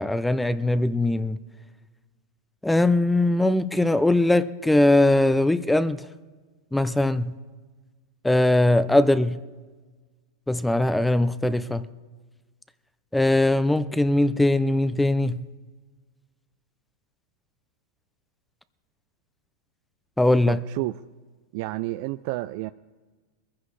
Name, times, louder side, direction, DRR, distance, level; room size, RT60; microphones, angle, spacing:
voice 1, 0.0-1.4 2.6-6.0 6.7-7.3 8.2-9.4 10.5-11.9 13.1-15.4 20.2-20.6, left 1 dB, 5° left, 0.6 m, -21 dB
voice 2, 20.5-21.0 21.5-22.7, right 19 dB, 60° right, 0.4 m, -30 dB
22.0 x 15.0 x 3.3 m
hypercardioid pair, 110°, 0 cm